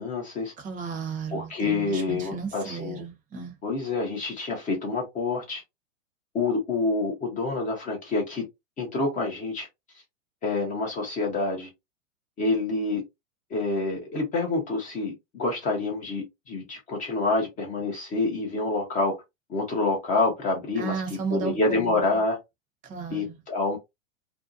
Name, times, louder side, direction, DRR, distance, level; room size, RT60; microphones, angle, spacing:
voice 1, 0.0-0.5 1.3-3.0 3.6-5.6 6.3-8.4 8.8-9.7 10.4-11.7 12.4-13.0 13.5-19.1 19.5-22.4 23.1-23.8, left 3 dB, 20° left, 0.6 m, -27 dB
voice 2, 0.6-3.5 20.8-22.0 22.8-23.4, right 6 dB, 20° right, 0.7 m, -34 dB
2.6 x 2.1 x 2.5 m
hypercardioid pair, 115°, 41 cm